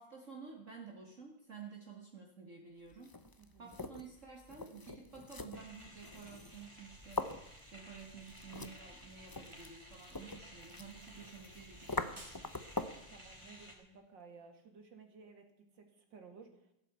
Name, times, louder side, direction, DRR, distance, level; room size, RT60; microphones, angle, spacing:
voice 1, 0.0-3.1 3.6-7.3 7.7-12.3, right 5 dB, 45° right, 1 dB, 2.0 m, -52 dB
sound 1, 2.9-13.1, left 2 dB, 30° left, 0.4 m, -44 dB
voice 2, 3.4-3.8 13.1-16.7, right 5 dB, 85° right, 5 dB, 2.9 m, -56 dB
sound 2, 5.5-13.8, equal, 15° right, 3.3 m, -55 dB
15.5 x 8.5 x 8.2 m, 0.80 s
omnidirectional pair, 1.9 m